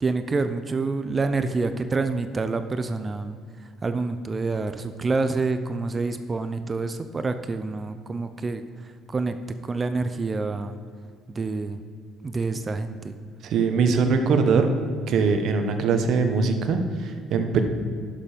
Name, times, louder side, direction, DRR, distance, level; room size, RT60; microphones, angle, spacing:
voice 1, 0.0-3.4 3.8-8.6 9.1-9.4 9.6-10.8 11.3-11.8 12.2-13.2, right 3 dB, 25° right, 9 dB, 0.6 m, -27 dB
voice 2, 13.4-14.7 15.1-17.6, right 5 dB, 65° right, 6 dB, 1.2 m, -22 dB
11.0 x 6.9 x 5.1 m, 2.2 s
cardioid pair, 100°, 0 cm